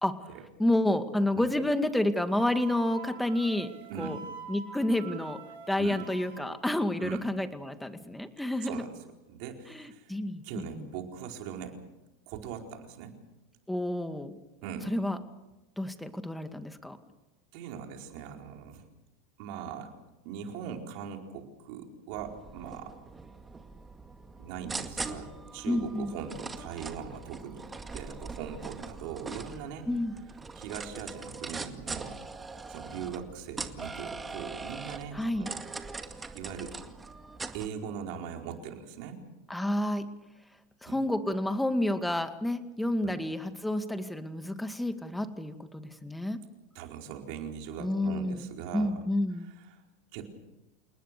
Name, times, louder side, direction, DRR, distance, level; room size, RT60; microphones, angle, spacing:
voice 1, 0.6-3.7 4.0-4.2 4.5-5.4 5.7-8.8 9.7-10.4 10.7-10.9 13.7-14.4 14.9-15.2 15.8-17.0 25.7-26.1 29.9-30.1 35.1-35.5 39.5-40.1 40.8-46.4 47.8-48.5 48.7-49.5, left 1 dB, 5° left, 9 dB, 2.2 m, -29 dB
Wind instrument woodwind instrument, 2.3-6.5, right 7 dB, 75° right, 7.3 m, -45 dB
voice 2, 3.9-4.2 5.8-6.0 7.0-7.3 8.6-9.0 9.3-10.1 10.4-11.8 12.3-13.2 14.6-14.9 17.5-18.8 19.4-19.9 20.2-22.9 24.4-27.7 27.9-29.9 30.5-32.2 32.7-35.6 36.3-36.7 37.5-39.2 40.8-41.1 43.0-43.2 46.7-49.0 49.7-49.8 50.1-50.2, right 7 dB, 60° right, 3 dB, 4.4 m, -40 dB
sound 1, 22.1-37.7, right 4 dB, 15° right, 2.1 m, -42 dB
29.0 x 19.5 x 6.9 m, 0.97 s
hypercardioid pair, 100°, 0 cm